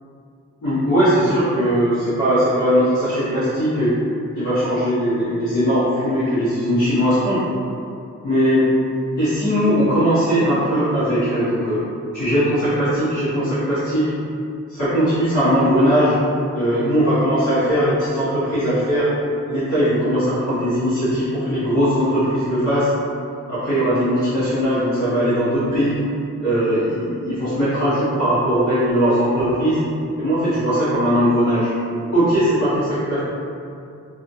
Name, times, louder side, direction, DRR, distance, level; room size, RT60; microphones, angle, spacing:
voice 1, 0.6-3.9 4.4-7.4 8.2-8.6 9.2-11.8 12.1-14.1 14.7-16.2 16.5-19.1 19.5-22.9 23.5-26.0 26.4-29.8 30.2-31.7 32.1-33.2, equal, 80° left, -16 dB, 1.3 m, -19 dB
2.7 x 2.4 x 2.6 m, 2.5 s
wide cardioid pair, 95°, 29 cm